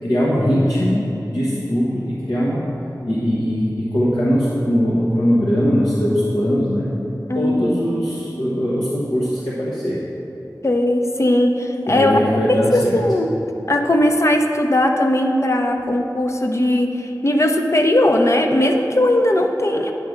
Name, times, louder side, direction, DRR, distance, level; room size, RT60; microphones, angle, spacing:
voice 1, 0.0-2.7 3.1-6.9 7.3-10.0 11.9-13.0, equal, 75° left, -8 dB, 1.1 m, -20 dB
voice 2, 7.3-7.8 10.6-12.2 12.5-13.3 13.7-19.9, left 1 dB, 40° left, 4 dB, 0.6 m, -18 dB
9.1 x 3.6 x 6.4 m, 3.0 s
wide cardioid pair, 60°, 7 cm